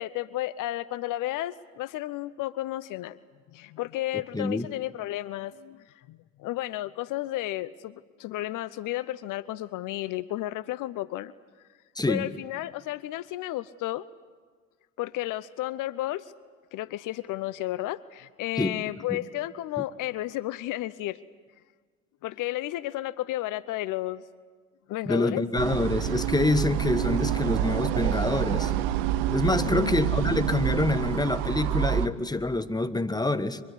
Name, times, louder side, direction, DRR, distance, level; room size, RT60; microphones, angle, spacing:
voice 1, 0.0-3.2 3.5-5.8 6.1-11.3 12.1-14.1 15.0-16.3 16.7-21.2 22.2-24.2 24.9-25.4 29.6-30.0, left 15 dB, 55° left, 18 dB, 0.8 m, -32 dB
voice 2, 4.3-4.7 11.9-12.3 18.6-18.8 19.1-19.2 25.1-28.7 29.3-33.6, left 2 dB, 10° left, 13 dB, 1.4 m, -26 dB
sound 1, 25.6-32.1, right 11 dB, 70° right, 1.1 m, -27 dB
23.5 x 23.0 x 9.9 m, 1.5 s
hypercardioid pair, 60°, 37 cm